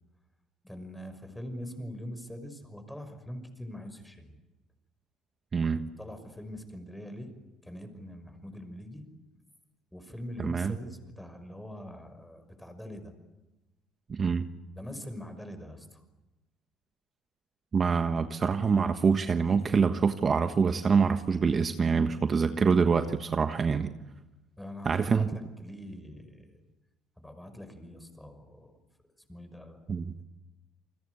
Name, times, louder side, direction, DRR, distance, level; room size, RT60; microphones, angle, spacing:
voice 1, 0.6-4.3 5.7-7.3 7.6-9.1 9.9-13.1 14.7-16.0 24.6-26.6 27.2-28.7 29.3-29.9, equal, 5° left, 9 dB, 5.7 m, -43 dB
voice 2, 5.5-5.9 10.4-10.8 14.1-14.5 17.7-23.9 24.8-25.3 29.9-30.1, right 5 dB, 35° right, 8 dB, 1.3 m, -25 dB
29.5 x 21.5 x 8.2 m, 1.0 s
cardioid pair, 100°, 0 cm